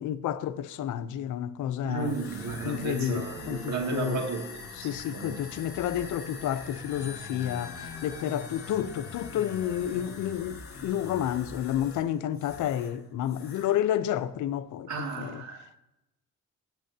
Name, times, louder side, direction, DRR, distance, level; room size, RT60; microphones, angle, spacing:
voice 1, 0.0-2.2 2.6-4.2 4.8-14.9 15.2-15.4, left 11 dB, 80° left, 0.7 m, -30 dB
voice 2, 1.8-4.5 4.8-5.4 14.9-15.8, right 4 dB, 70° right, 2.3 m, -34 dB
sound 1, 2.0-13.0 13.2-13.8, left 4 dB, 45° left, 2.6 m, -42 dB
16.5 x 7.6 x 2.8 m
cardioid pair, 90°, 30 cm